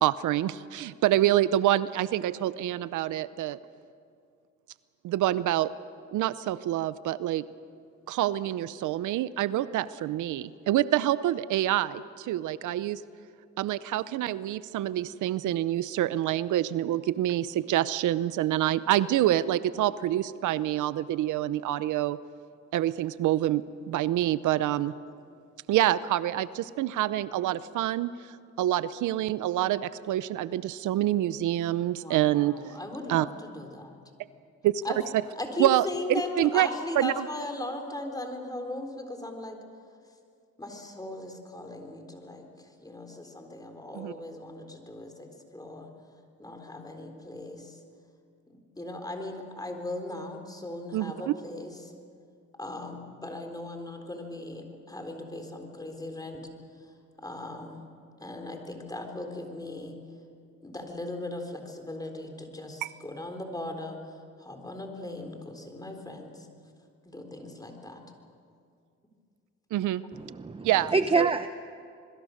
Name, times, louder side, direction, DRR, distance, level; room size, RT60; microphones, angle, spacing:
voice 1, 0.0-3.6 5.0-5.7 6.1-7.4 8.1-13.0 13.6-22.2 22.7-24.9 25.7-32.6 33.1-33.3 34.6-34.8 35.6-36.7 37.0-37.3 43.9-44.1 50.9-51.3 62.8-62.9 69.7-70.0 70.6-71.3, right 13 dB, 80° right, 16 dB, 0.7 m, -27 dB
voice 2, 31.9-34.0 34.8-35.0 35.4-39.6 40.6-45.9 46.4-47.8 48.5-51.9 52.6-56.5 56.8-56.9 57.2-57.8 58.2-60.0 60.6-66.5 67.1-68.0, left 2 dB, 15° left, 4 dB, 3.9 m, -38 dB
voice 3, 70.1-71.5, right 4 dB, 20° right, 10 dB, 0.8 m, -26 dB
27.0 x 22.0 x 6.5 m, 2.3 s
cardioid pair, 90°, 30 cm